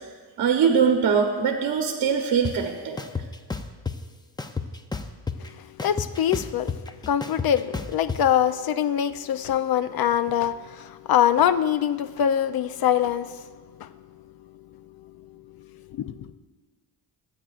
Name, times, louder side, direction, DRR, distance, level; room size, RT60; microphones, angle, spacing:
voice 1, 0.4-3.0, right 6 dB, 60° right, 1.1 m, -22 dB
sound 1, 2.4-2.5 3.0-4.0 4.4-5.5 5.8-8.2, left 4 dB, 10° left, 0.5 m, -30 dB
voice 2, 5.8-6.7 7.1-13.4 13.8-13.9 15.9-16.3, left 10 dB, 60° left, 0.6 m, -23 dB
23.0 x 8.9 x 2.5 m
cardioid pair, 115°, 42 cm